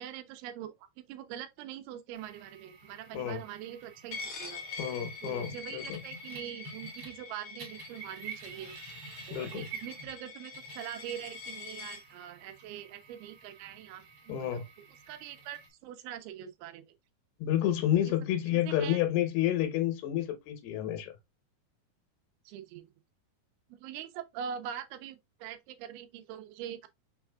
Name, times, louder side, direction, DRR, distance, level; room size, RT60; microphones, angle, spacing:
voice 1, 0.0-4.6 5.2-8.8 9.3-14.6 15.1-16.9 18.1-18.2 18.5-19.0 22.5-22.9 23.7-26.9, right 10 dB, 85° right, 2.6 m, -43 dB
sound 1, 2.1-7.3 7.6-15.7, right 5 dB, 50° right, 2.5 m, -50 dB
Coin (dropping), 4.1-12.0, left 4 dB, 60° left, 1.6 m, -44 dB
voice 2, 4.8-6.0 9.3-9.7 14.3-14.7 17.4-21.1, left 11 dB, 85° left, 3.1 m, -30 dB
6.3 x 3.5 x 2.2 m
omnidirectional pair, 4.5 m